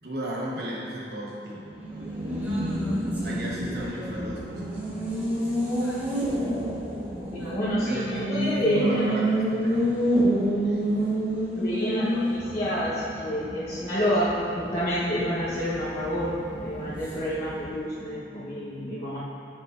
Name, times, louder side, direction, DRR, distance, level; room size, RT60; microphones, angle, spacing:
voice 1, 0.0-1.8 3.2-4.8 6.3-6.4 7.8-9.9 10.4-11.2, equal, 60° right, -4 dB, 1.1 m, -35 dB
Race car auto racing, 1.7-18.0, equal, 10° right, 0.9 m, -29 dB
voice 2, 7.3-9.1 11.6-16.3 16.6-19.2, equal, 35° left, -12 dB, 1.0 m, -28 dB
7.6 x 5.3 x 2.5 m, 2.7 s
head